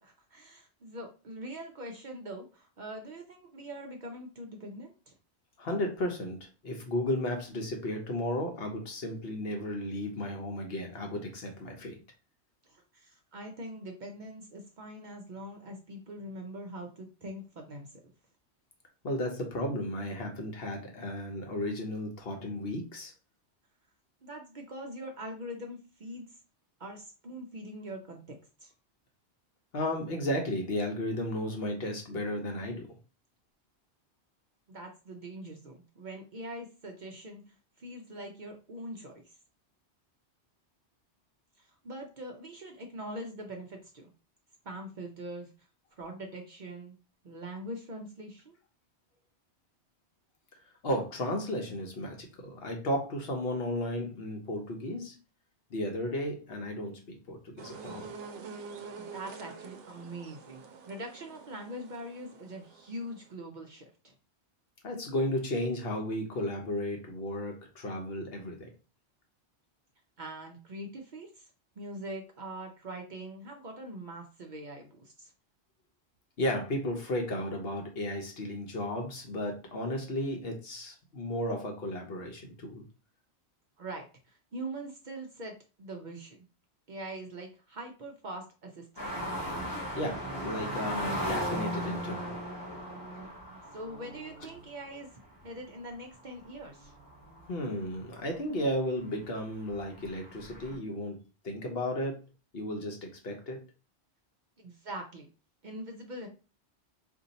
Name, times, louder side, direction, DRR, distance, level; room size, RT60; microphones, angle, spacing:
voice 1, 0.0-5.1 12.6-17.9 24.2-26.3 26.8-28.7 34.7-39.4 41.6-44.1 44.6-45.5 46.0-47.0 47.2-48.5 58.9-64.1 70.2-71.5 71.8-75.3 83.8-86.5 86.9-88.9 93.7-95.1 95.4-96.9 104.6-105.3 105.6-106.3, right 1 dB, 55° right, 2 dB, 0.6 m, -43 dB
voice 2, 5.6-12.0 19.0-23.1 29.7-32.9 50.8-55.2 55.7-58.1 64.8-68.7 76.4-82.8 90.0-92.4 97.5-102.2 102.5-103.6, left 1 dB, 60° left, 3 dB, 1.0 m, -34 dB
sound 1, 57.6-63.3, right 5 dB, 90° right, 0.9 m, -46 dB
sound 2, 89.0-98.1 98.5-98.6 99.0-100.8, equal, 25° left, 1.0 m, -37 dB
2.6 x 2.6 x 3.9 m, 0.33 s
omnidirectional pair, 1.1 m